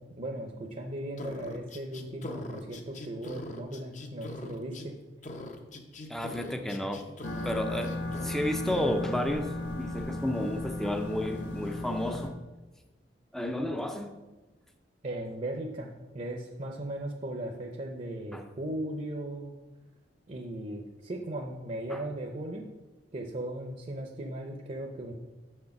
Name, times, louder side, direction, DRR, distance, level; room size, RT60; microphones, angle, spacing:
voice 1, 0.0-5.0 15.0-19.5 20.3-22.7 23.1-25.1, right 1 dB, 40° right, 2 dB, 0.7 m, -37 dB
sound 1, 1.2-4.9 5.2-7.5 7.8-8.3 8.7-8.9, left 1 dB, 45° left, 0.8 m, -42 dB
voice 2, 6.1-7.1 7.4-8.0 8.2-12.3 13.3-14.1 18.3-18.4 21.9-22.0, left 1 dB, ahead, 5 dB, 0.5 m, -32 dB
sound 2, 7.2-12.3, left 1 dB, 80° left, 1.3 m, -35 dB
6.6 x 6.3 x 5.8 m, 1.2 s
head